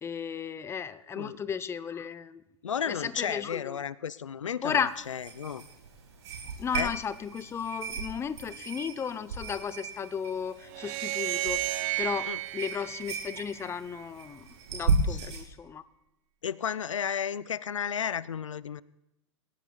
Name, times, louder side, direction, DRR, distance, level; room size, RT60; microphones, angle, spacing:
voice 1, 0.0-2.4 2.8-3.8 4.6-4.9 6.6-11.6 12.0-15.8, left 7 dB, 15° left, 15 dB, 0.7 m, -34 dB
voice 2, 2.6-5.6 6.7-6.9 12.2-12.4 15.1-15.2 16.4-18.8, left 8 dB, 80° left, 19 dB, 0.5 m, -33 dB
sound 1, 4.7-15.4, right 4 dB, 70° right, 5.6 m, -35 dB
sound 2, 10.7-14.0, right 18 dB, 45° right, 1.3 m, -33 dB
27.0 x 16.0 x 2.3 m, 0.89 s
figure-of-eight pair, 100°, 16 cm